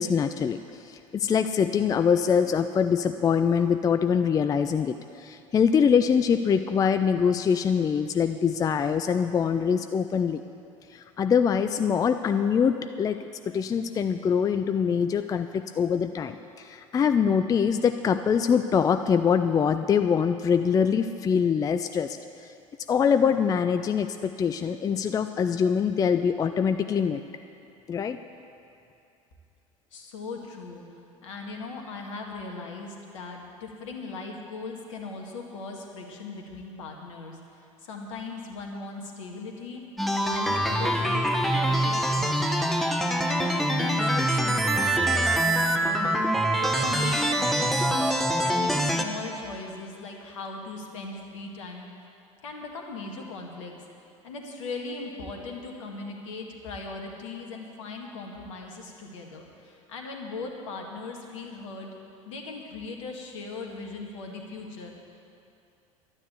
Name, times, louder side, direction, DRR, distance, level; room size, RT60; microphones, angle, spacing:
voice 1, 0.0-10.4 10.9-13.2 13.5-22.5 22.9-27.2 27.9-28.2, left 7 dB, 20° left, 9 dB, 0.4 m, -24 dB
voice 2, 29.9-30.9 31.2-39.8 40.2-42.4 43.0-46.3 46.5-48.1 48.4-51.9 52.4-53.8 54.2-61.9 62.3-64.9, left 3 dB, 65° left, 1 dB, 1.8 m, -39 dB
sound 1, 40.0-49.0, right 1 dB, ahead, 1.0 m, -24 dB
12.0 x 9.7 x 8.1 m, 2.6 s
figure-of-eight pair, 70°, 17 cm